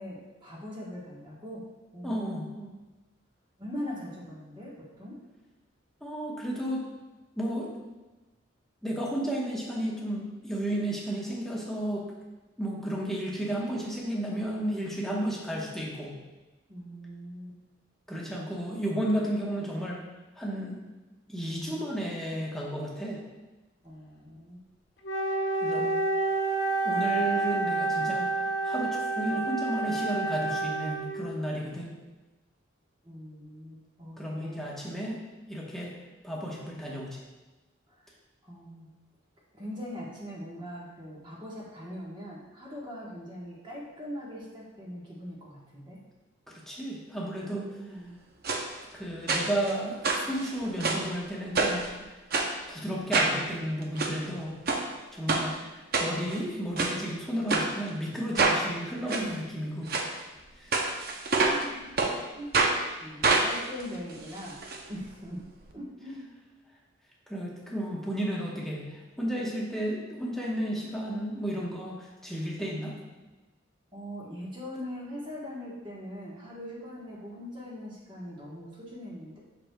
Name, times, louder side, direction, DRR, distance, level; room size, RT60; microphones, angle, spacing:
voice 1, 0.0-1.6 1.9-2.7 3.6-5.2 16.7-17.6 23.8-24.6 33.0-34.7 37.9-38.0 38.4-38.9 39.5-46.0 47.3-48.2 59.1-59.3 61.5-61.9 62.3-64.6 64.9-65.4 65.7-66.3 73.9-79.4, equal, 25° right, -5 dB, 1.2 m, -41 dB
voice 2, 2.0-2.4 6.0-6.9 7.3-7.7 8.8-12.1 12.6-16.1 18.1-20.0 20.4-20.8 21.3-23.2 25.6-26.0 26.8-28.3 28.6-31.9 34.2-35.2 35.5-35.9 36.2-37.2 46.5-47.7 48.9-52.1 52.7-54.6 55.1-59.9 60.5-60.8 67.3-72.9, right 1 dB, ahead, -4 dB, 1.0 m, -33 dB
Wind instrument woodwind instrument, 25.0-31.4, right 3 dB, 55° left, 1.1 m, -29 dB
sound 1, 48.4-48.6 49.3-49.7 50.0-51.1 51.5-51.9 52.3-52.5 53.1-53.4 53.8-54.1 54.7-54.8 55.3-55.4 55.9-56.4 56.8-56.9 57.5-57.7 58.3-58.6 59.1-59.2 59.9-60.1 60.7-61.6 62.0-62.1 62.5-62.8 63.2-64.8 65.1-65.2 65.4-65.5, right 3 dB, 50° right, 0.6 m, -26 dB
7.4 x 6.1 x 2.2 m, 1.1 s
head